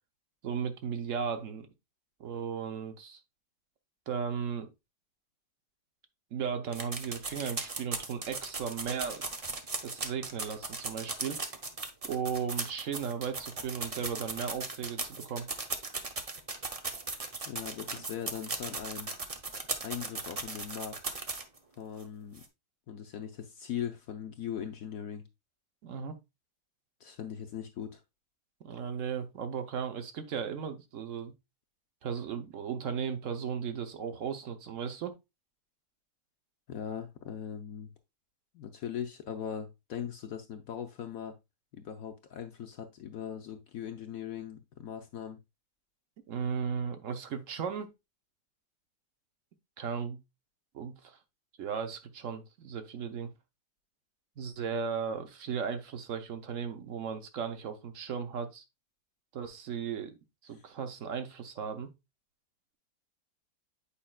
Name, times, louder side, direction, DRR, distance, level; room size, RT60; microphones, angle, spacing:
voice 1, 0.4-1.7 2.2-3.2 4.1-4.7 6.3-9.2 9.8-11.4 12.0-15.5 25.8-26.2 28.6-31.3 32.0-35.1 46.3-47.9 49.8-50.2 50.7-51.2 51.6-53.3 54.4-58.6 59.3-60.1 60.4-61.9, right 6 dB, 55° right, 1.1 m, -36 dB
sound 1, 6.7-21.6 22.0-22.1 22.4-22.5, right 3 dB, 70° right, 0.3 m, -37 dB
voice 2, 17.4-19.1 19.8-21.2 21.8-22.4 22.9-25.2 27.0-28.0 36.7-37.9 38.5-41.3 41.7-45.4 60.5-60.6, left 8 dB, 65° left, 0.9 m, -40 dB
8.6 x 5.0 x 2.3 m
omnidirectional pair, 2.0 m